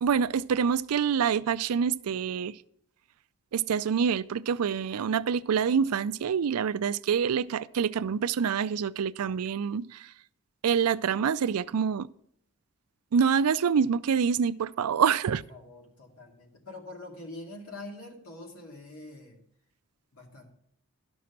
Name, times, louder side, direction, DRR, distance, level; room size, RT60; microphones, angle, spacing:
voice 1, 0.0-2.5 3.5-10.1 10.6-12.1 13.1-15.4, right 7 dB, 90° right, 0.4 m, -26 dB
voice 2, 15.3-19.4 20.1-20.5, left 2 dB, 75° left, 2.4 m, -45 dB
12.0 x 6.2 x 5.8 m
head